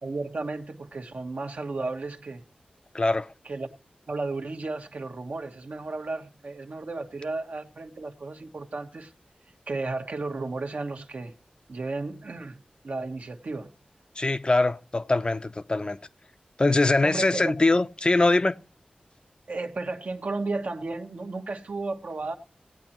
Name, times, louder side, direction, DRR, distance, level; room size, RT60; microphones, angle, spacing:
voice 1, 0.0-2.4 3.4-3.7 4.1-9.1 9.7-11.3 11.7-12.6 12.8-13.7 17.0-17.5 19.5-22.4, right 3 dB, 70° right, 1.2 m, -33 dB
voice 2, 2.9-3.3 14.2-16.0 16.6-18.6, left 2 dB, 35° left, 0.6 m, -23 dB
17.5 x 8.8 x 2.9 m
wide cardioid pair, 75°, 3 cm